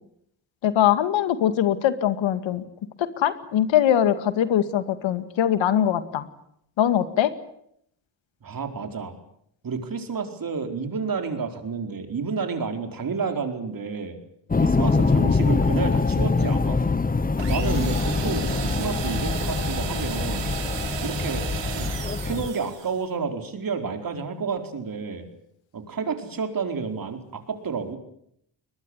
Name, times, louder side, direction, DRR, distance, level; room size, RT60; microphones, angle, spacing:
voice 1, 0.6-2.6 3.0-6.3 6.8-7.3, left 10 dB, 80° left, 12 dB, 2.2 m, -22 dB
voice 2, 8.4-9.1 9.6-14.1 14.6-16.8 17.4-20.5 21.0-21.5 21.8-21.9 22.2-25.2 25.7-28.0, right 5 dB, 50° right, 6 dB, 4.7 m, -30 dB
sound 1, 14.5-22.5, left 4 dB, 20° left, 1.0 m, -24 dB
sound 2, 17.4-23.0, right 8 dB, 70° right, 4.0 m, -34 dB
22.0 x 21.0 x 9.9 m, 0.72 s
cardioid pair, 80°, 45 cm